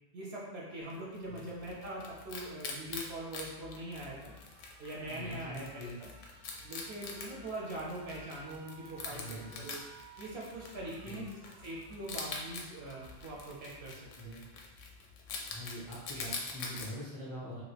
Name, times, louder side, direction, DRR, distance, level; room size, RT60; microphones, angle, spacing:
voice 1, 0.1-4.3 4.8-6.1 6.6-9.8 10.2-14.4 16.2-16.3, right 1 dB, 65° right, -4 dB, 0.8 m, -42 dB
Wild animals, 0.9-16.9, left 4 dB, 75° left, 0.9 m, -45 dB
Alarm, 3.3-14.3, right 4 dB, 85° right, 1.0 m, -59 dB
voice 2, 5.0-6.0 9.1-9.6 11.0-11.3 14.1-14.4 15.5-17.6, equal, 20° left, -8 dB, 0.7 m, -44 dB
2.9 x 2.4 x 3.2 m, 1.1 s
omnidirectional pair, 1.3 m